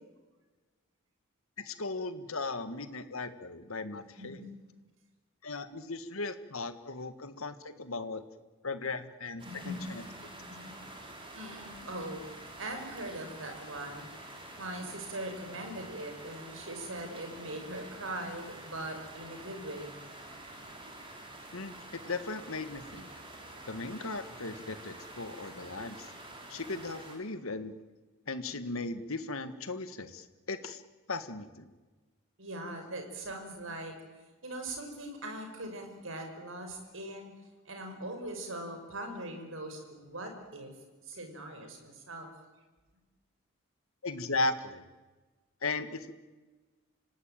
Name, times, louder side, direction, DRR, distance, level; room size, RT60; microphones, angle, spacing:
voice 1, 1.6-4.4 5.4-8.2 8.6-10.0 21.5-23.1 23.7-26.1 26.5-27.7 28.3-30.8 31.1-31.7 44.0-44.8 45.6-46.1, left 3 dB, 75° left, 10 dB, 1.8 m, -37 dB
voice 2, 4.0-4.7 9.4-10.8 11.3-12.2 12.6-14.1 14.6-20.0 23.8-23.9 32.4-33.9 34.4-37.3 37.6-40.7 41.0-42.3, right 1 dB, 65° right, 4 dB, 5.6 m, -41 dB
sound 1, 9.4-27.2, right 1 dB, 25° right, 4.7 m, -48 dB
26.5 x 18.0 x 9.0 m, 1.3 s
head